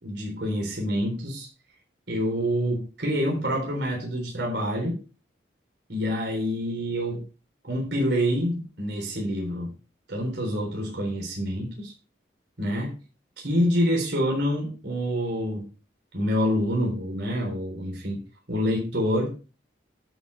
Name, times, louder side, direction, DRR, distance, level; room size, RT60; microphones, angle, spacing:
voice 1, 0.0-1.5 2.1-5.0 5.9-7.2 7.6-9.7 10.1-11.9 12.6-12.9 13.4-15.7 16.1-18.2 18.5-19.4, equal, 75° right, 0 dB, 3.8 m, -27 dB
12.0 x 5.5 x 4.8 m, 0.33 s
head